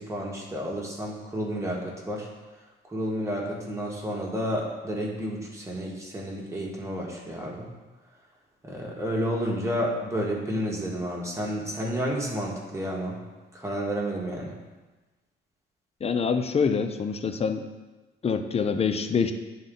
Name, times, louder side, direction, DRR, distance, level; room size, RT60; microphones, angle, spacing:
voice 1, 0.0-2.3 2.9-7.7 8.6-13.2 13.5-14.5, equal, 15° right, -3 dB, 1.5 m, -31 dB
voice 2, 16.0-17.7 18.2-19.3, left 5 dB, 30° left, 8 dB, 0.6 m, -25 dB
9.4 x 4.0 x 3.8 m, 1.2 s
cardioid pair, 90°, 20 cm